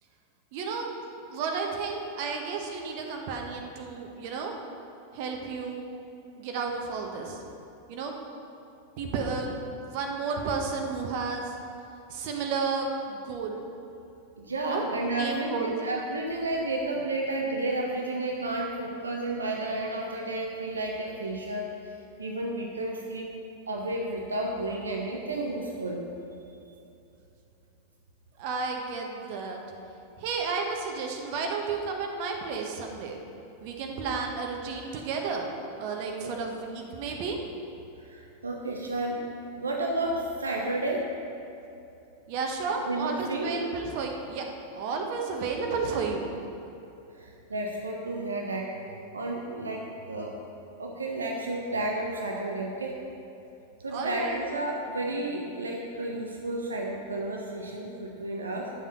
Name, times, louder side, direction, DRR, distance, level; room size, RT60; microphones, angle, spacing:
voice 1, 0.5-1.0 1.3-4.5 5.1-5.9 6.4-7.4 7.9-8.1 9.0-9.5 9.8-11.5 12.1-13.6 14.7-14.8 15.2-15.7 28.4-29.6 30.2-33.2 33.6-35.5 35.8-37.4 42.3-44.5 44.8-46.3 53.9-54.4, right 4 dB, 45° right, 2 dB, 1.2 m, -32 dB
voice 2, 14.4-21.7 22.2-23.3 23.7-26.0 34.1-34.2 36.2-36.3 38.0-39.2 39.6-41.1 42.9-43.5 47.1-50.4 50.8-53.0 53.8-58.7, right 2 dB, 75° right, 0 dB, 0.9 m, -32 dB
10.0 x 7.3 x 5.6 m, 2.8 s
figure-of-eight pair, 90°, 0 cm